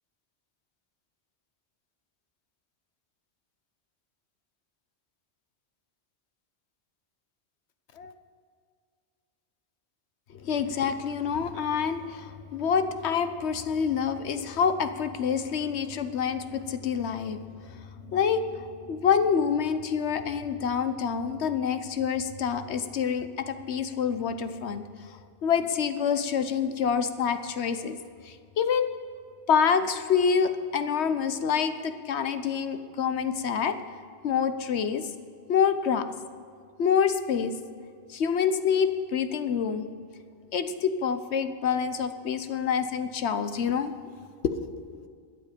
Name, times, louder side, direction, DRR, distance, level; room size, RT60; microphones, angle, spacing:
voice 1, 10.3-28.0 28.2-28.9 29.5-33.8 34.2-35.1 35.5-36.0 36.8-37.5 38.1-39.9 40.5-43.9 44.4-45.1, left 7 dB, 80° left, 10 dB, 1.1 m, -27 dB
21.0 x 7.5 x 5.2 m, 2.2 s
omnidirectional pair, 1.1 m